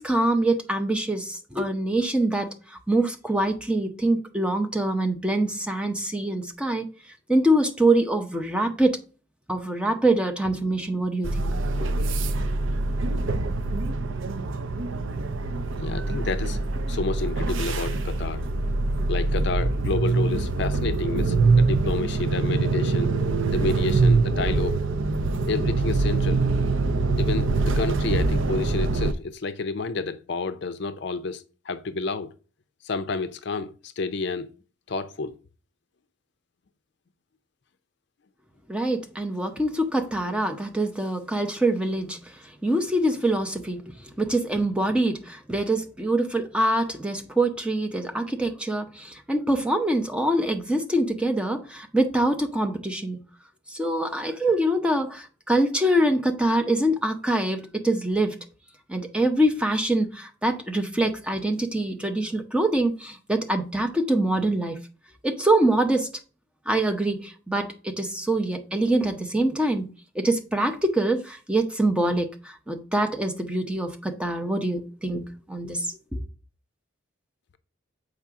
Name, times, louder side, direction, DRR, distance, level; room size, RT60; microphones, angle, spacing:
voice 1, 0.0-6.9 7.3-9.0 9.5-11.5 11.8-11.9 38.7-42.2 42.6-53.2 53.7-58.4 58.9-64.8 65.2-66.1 66.7-69.9 70.1-76.2, right 1 dB, 5° right, 0.7 m, -24 dB
sound 1, 11.2-29.1, right 3 dB, 70° right, 0.5 m, -24 dB
voice 2, 15.8-16.6 16.9-18.4 19.1-23.1 23.5-24.8 25.5-26.4 27.2-32.3 32.8-34.5 34.9-35.4, left 4 dB, 55° left, 0.5 m, -30 dB
7.2 x 4.9 x 3.6 m
head